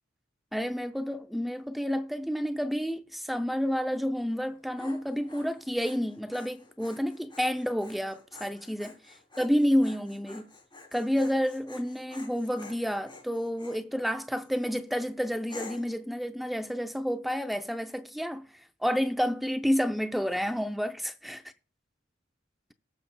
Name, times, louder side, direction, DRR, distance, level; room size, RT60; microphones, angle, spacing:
voice 1, 0.5-9.0 9.4-10.5 10.9-18.5 18.8-21.4, equal, ahead, 0.4 m, -30 dB
Dog, 4.4-13.8 14.4-14.8 15.5-16.0, left 3 dB, 25° left, 3.1 m, -50 dB
19.0 x 6.7 x 2.2 m
head